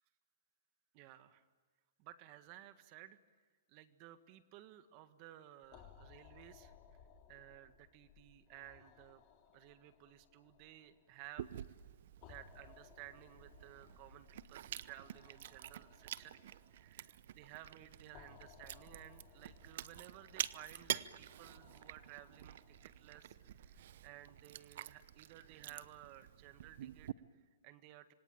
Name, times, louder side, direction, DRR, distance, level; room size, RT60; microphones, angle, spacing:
voice 1, 0.9-1.4 2.0-3.2 3.7-6.7 7.3-9.2 9.5-11.5 12.2-16.4 16.7-28.1, right 13 dB, 40° right, 11 dB, 1.6 m, -56 dB
sound 1, 5.6-23.8, left 8 dB, 40° left, 3.1 m, -63 dB
Chewing mastication, 11.4-27.1, right 11 dB, 60° right, 0.9 m, -48 dB
26.5 x 24.0 x 9.1 m, 1.4 s
hypercardioid pair, 130°, 0 cm